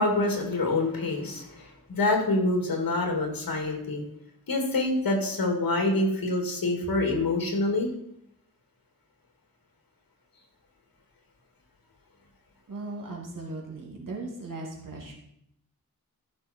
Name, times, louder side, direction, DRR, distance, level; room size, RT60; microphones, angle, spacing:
voice 1, 0.0-4.1 4.5-7.9, left 2 dB, 75° left, 2 dB, 2.7 m, -26 dB
voice 2, 12.7-15.2, right 2 dB, 65° right, 0 dB, 2.6 m, -38 dB
14.0 x 6.2 x 4.5 m, 0.75 s
wide cardioid pair, 110°, 35 cm